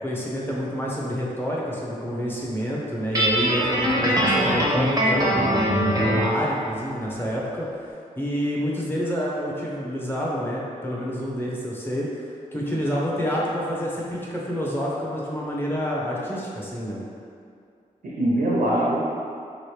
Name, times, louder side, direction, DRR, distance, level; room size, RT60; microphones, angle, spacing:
voice 1, 0.0-5.6 6.0-7.7 8.2-12.2 12.5-17.0, equal, 15° left, -5 dB, 0.7 m, -28 dB
Guitar, 3.1-6.4, equal, 25° right, 0.6 m, -22 dB
voice 2, 4.0-4.4 18.0-19.0, right 1 dB, 75° right, -5 dB, 0.6 m, -24 dB
3.1 x 3.0 x 3.1 m, 2.4 s
wide cardioid pair, 95°, 15 cm